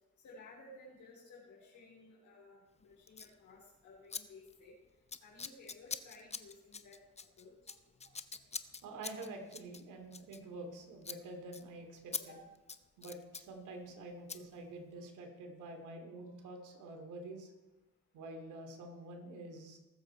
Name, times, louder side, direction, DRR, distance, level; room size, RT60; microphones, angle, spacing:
voice 1, 0.2-4.7 5.2-7.0 7.4-7.7 12.2-12.4, left 2 dB, 70° left, -4 dB, 3.9 m, -56 dB
Scissors, 3.1-3.3 4.1-4.2 4.5-4.7 5.1-10.8 11.0-11.2 11.5-11.6 12.1-12.2 12.6-13.5 14.3-14.4, left 5 dB, 20° left, 0.6 m, -44 dB
voice 2, 8.8-12.1 13.0-17.5 18.1-19.8, right 2 dB, 85° right, 3 dB, 2.7 m, -47 dB
19.0 x 7.7 x 4.5 m, 1.1 s
cardioid pair, 90°, 30 cm